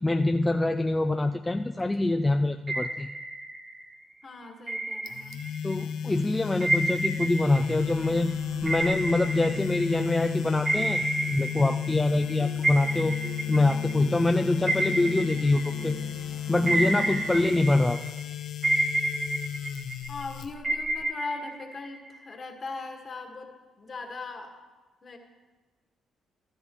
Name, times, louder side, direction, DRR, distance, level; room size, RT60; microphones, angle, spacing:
voice 1, 0.0-3.1 5.6-13.2 13.5-16.0 16.5-18.0, left 2 dB, 15° left, 6 dB, 0.4 m, -25 dB
sound 1, 2.7-3.9 4.7-5.8 6.6-10.2 10.6-12.3 12.6-16.2 16.7-18.2 18.6-20.2 20.6-22.3, right 2 dB, 30° right, 0.8 m, -30 dB
voice 2, 4.2-5.4 20.1-23.5 23.8-24.5 25.0-25.2, left 3 dB, 40° left, 3 dB, 1.7 m, -39 dB
sound 2, 5.1-21.0, left 10 dB, 75° left, 0.6 m, -34 dB
sound 3, 7.8-17.7, right 4 dB, 70° right, 1.4 m, -43 dB
13.0 x 13.0 x 3.1 m, 1.3 s
cardioid pair, 90°, 0 cm